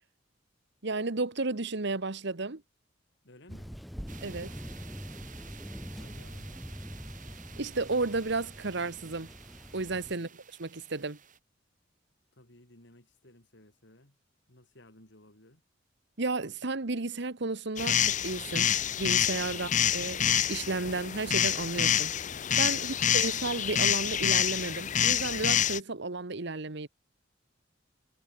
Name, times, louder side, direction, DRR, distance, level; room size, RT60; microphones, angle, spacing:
voice 1, 0.8-2.6 4.2-4.6 7.6-9.3 9.7-10.3 10.6-11.2 16.2-18.7 19.0-20.2 20.5-22.1 22.6-26.9, right 3 dB, 60° right, 1.3 m, -33 dB
voice 2, 3.2-3.8 5.9-6.7 10.0-10.3 12.3-14.2 14.5-15.6, left 1 dB, 65° left, 5.1 m, -57 dB
Thunder, 3.5-10.2, equal, ahead, 1.5 m, -44 dB
sound 1, 4.1-11.4, right 7 dB, 40° right, 7.3 m, -52 dB
sound 2, 17.8-25.8, left 9 dB, 40° left, 0.7 m, -27 dB
head